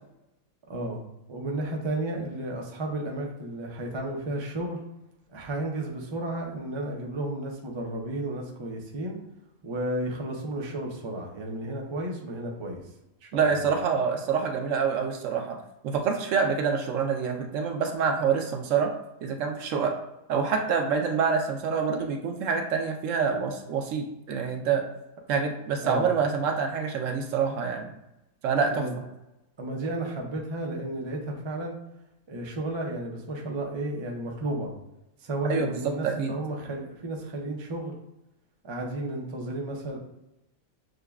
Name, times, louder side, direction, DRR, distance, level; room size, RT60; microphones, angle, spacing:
voice 1, 0.7-1.0 1.3-4.8 5.3-9.2 9.6-12.8 13.2-13.7 25.8-26.1 28.7-28.9 29.6-31.7 32.3-34.7 35.2-37.9 38.6-40.0, right 1 dB, 45° right, -1 dB, 0.3 m, -33 dB
voice 2, 13.3-15.6 15.8-18.9 19.2-19.9 20.3-24.8 25.3-27.9 28.4-28.8 35.5-36.4, right 6 dB, 70° right, 4 dB, 0.9 m, -26 dB
6.4 x 2.2 x 2.3 m, 0.93 s
omnidirectional pair, 1.5 m